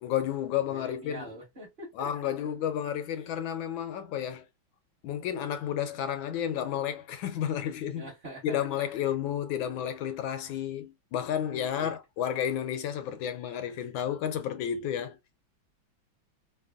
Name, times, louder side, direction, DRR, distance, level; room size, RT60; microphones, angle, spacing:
voice 1, 0.0-1.2 2.0-4.4 5.0-8.1 8.4-15.2, left 9 dB, 75° left, 1.3 m, -31 dB
voice 2, 0.7-2.3 3.2-3.3 7.9-8.9 11.8-11.9, right 1 dB, 35° right, 1.2 m, -44 dB
3.4 x 2.1 x 2.2 m
omnidirectional pair, 2.2 m